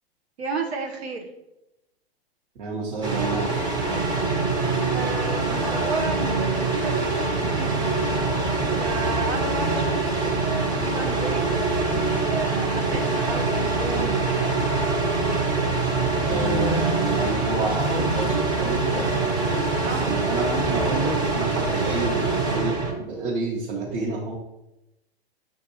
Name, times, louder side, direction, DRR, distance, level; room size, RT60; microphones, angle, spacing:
voice 1, 0.4-1.3 4.8-7.8 8.7-14.6 19.8-20.1, right 4 dB, 85° right, 1 dB, 0.8 m, -33 dB
voice 2, 2.6-4.4 16.3-19.3 19.8-24.4, right 3 dB, 55° right, -5 dB, 1.1 m, -29 dB
sound 1, 3.0-22.9, right 3 dB, 15° right, 0.6 m, -24 dB
6.8 x 2.5 x 2.7 m, 0.92 s
hypercardioid pair, 120°, 32 cm